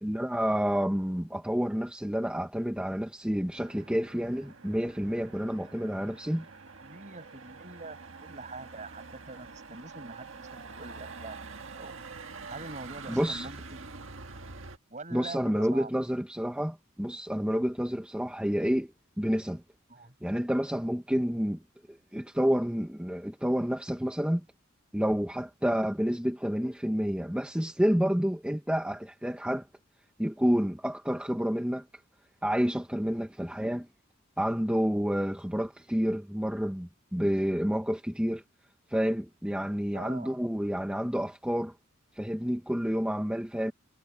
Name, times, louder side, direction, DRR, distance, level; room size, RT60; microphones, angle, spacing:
voice 1, 0.0-6.5 13.1-13.5 15.1-18.9 19.2-19.6 20.2-21.6 22.1-24.4 24.9-29.7 30.2-31.9 32.4-33.9 34.4-38.4 38.9-41.7 42.2-43.7, equal, 5° right, 1.0 m, -29 dB
Motor vehicle (road), 3.5-14.8, right 4 dB, 70° right, 1.7 m, -46 dB
voice 2, 6.8-11.5 11.8-12.0 12.5-13.9 14.9-15.9 19.9-20.1 39.9-40.4, right 3 dB, 35° right, 6.7 m, -44 dB
head